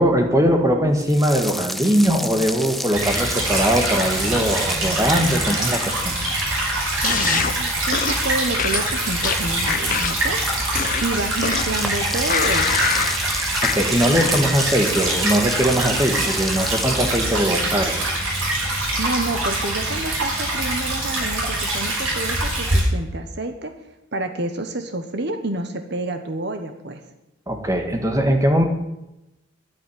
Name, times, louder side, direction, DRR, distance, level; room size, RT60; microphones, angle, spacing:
voice 1, 0.0-6.2 13.6-18.1 27.5-28.6, equal, 15° right, 4 dB, 1.7 m, -20 dB
sound 1, 1.0-17.8, left 1 dB, ahead, 0.5 m, -32 dB
Stream / Trickle dribble, 2.9-22.8, right 1 dB, 80° right, 6.0 m, -24 dB
sound 2, 7.0-7.5 7.9-8.2 8.6-10.3 10.7-11.8 12.3-13.2 13.6-13.8, left 7 dB, 40° left, 0.8 m, -25 dB
voice 2, 7.0-10.4 11.0-12.8 19.0-23.7 24.1-27.1, right 2 dB, 55° right, 7 dB, 1.2 m, -28 dB
10.0 x 8.9 x 9.8 m, 0.93 s
head